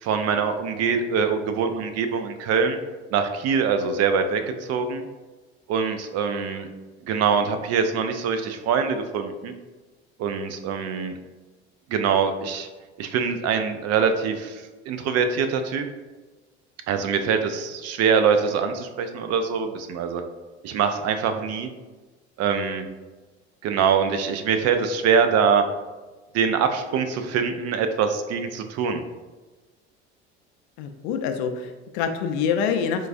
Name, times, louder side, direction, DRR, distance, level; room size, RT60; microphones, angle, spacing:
voice 1, 0.0-2.8 3.1-5.1 5.7-6.7 7.1-9.5 10.2-11.2 11.9-12.7 13.0-15.9 16.9-20.2 20.6-21.7 22.4-22.9 23.6-25.6 26.3-29.0, right 6 dB, 50° right, 8 dB, 0.5 m, -23 dB
voice 2, 30.8-33.1, left 7 dB, 70° left, 7 dB, 0.5 m, -26 dB
4.6 x 2.2 x 2.5 m, 1.2 s
hypercardioid pair, 70°, 33 cm